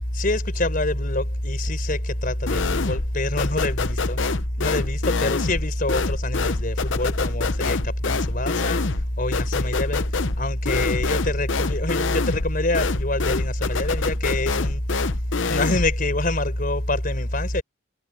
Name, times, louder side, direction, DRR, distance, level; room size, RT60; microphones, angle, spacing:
voice 1, 0.1-4.2 4.6-8.8 9.2-10.0 10.4-14.8 15.5-17.6, left 1 dB, 45° left, 4.8 m, -24 dB
sound 1, 2.5-3.1 3.4-16.0, left 4 dB, 70° left, 0.7 m, -27 dB
head